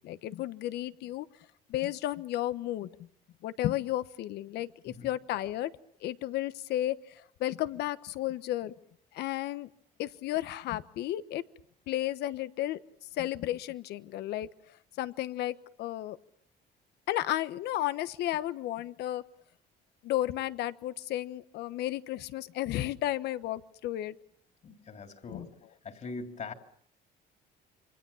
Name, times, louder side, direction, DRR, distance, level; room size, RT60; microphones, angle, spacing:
voice 1, 0.0-1.3 1.7-3.1 3.4-5.7 6.0-8.7 9.1-9.7 10.0-11.4 11.9-12.8 13.1-14.5 15.0-16.2 17.1-19.2 20.0-24.2 25.3-25.5, left 14 dB, 80° left, 13 dB, 1.2 m, -33 dB
voice 2, 24.6-25.5 25.8-26.5, left 3 dB, 45° left, 5 dB, 3.4 m, -42 dB
27.5 x 25.0 x 7.1 m, 0.65 s
cardioid pair, 110°, 17 cm